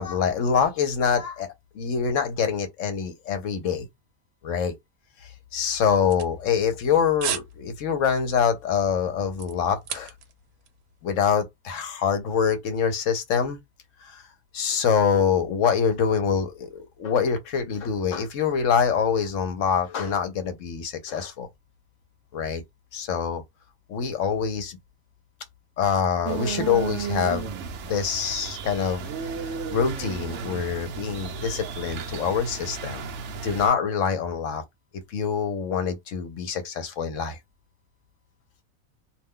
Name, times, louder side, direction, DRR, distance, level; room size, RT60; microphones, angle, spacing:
voice 1, 0.0-3.9 4.4-4.7 5.2-10.1 11.0-13.6 14.0-14.2 14.5-21.5 22.3-22.6 22.9-23.4 23.9-24.8 25.8-27.5 27.9-33.1 33.4-34.6 35.1-37.4, left 7 dB, 65° left, 0.9 m, -25 dB
sound 1, 5.8-6.8 7.2-7.5 7.9-8.1 8.6-10.4 10.7-10.8, right 9 dB, 80° right, 1.1 m, -33 dB
sound 2, 26.3-33.7, right 6 dB, 65° right, 0.8 m, -34 dB
2.5 x 2.2 x 3.5 m
omnidirectional pair, 1.6 m